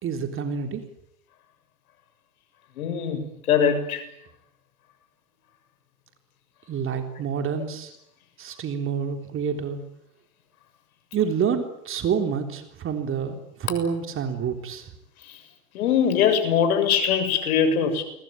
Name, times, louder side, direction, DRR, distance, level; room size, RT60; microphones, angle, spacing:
voice 1, 0.0-0.8 6.7-7.9 8.4-9.8 11.1-14.9, right 7 dB, 25° right, 6 dB, 3.7 m, -28 dB
voice 2, 2.8-3.2 3.5-4.0 15.2-15.4 15.7-18.0, left 7 dB, 65° left, 9 dB, 6.9 m, -22 dB
29.0 x 22.5 x 9.0 m, 0.77 s
hypercardioid pair, 110°, 46 cm